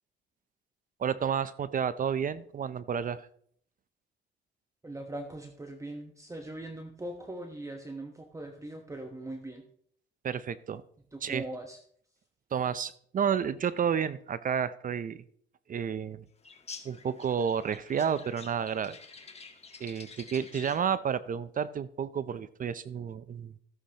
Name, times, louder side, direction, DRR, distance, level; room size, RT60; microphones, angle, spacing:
voice 1, 1.0-3.3 10.2-10.8 11.2-11.4 12.5-15.2 15.7-16.2 16.8-19.0 19.8-23.5, right 7 dB, 45° right, 16 dB, 0.5 m, -31 dB
voice 2, 4.8-9.6 11.1-11.8, right 1 dB, 15° right, 4 dB, 1.1 m, -40 dB
sound 1, 16.4-20.9, left 4 dB, 30° left, 1.4 m, -49 dB
14.5 x 8.4 x 2.9 m, 0.63 s
cardioid pair, 90°, 20 cm